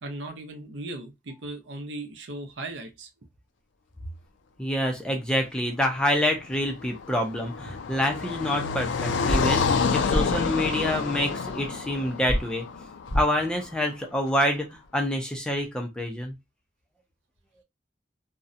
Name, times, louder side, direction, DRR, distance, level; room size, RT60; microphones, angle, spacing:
voice 1, 0.0-3.1 7.6-7.8, right 2 dB, 70° right, 0.6 m, -37 dB
voice 2, 4.6-12.7 13.1-16.3, left 1 dB, 5° left, 0.4 m, -27 dB
Car passing by, 6.4-13.6, left 5 dB, 80° left, 0.4 m, -28 dB
sound 1, 9.3-9.4 10.1-10.2 12.3-12.4 13.1-13.2, equal, 40° left, 0.7 m, -24 dB
2.6 x 2.1 x 2.4 m
head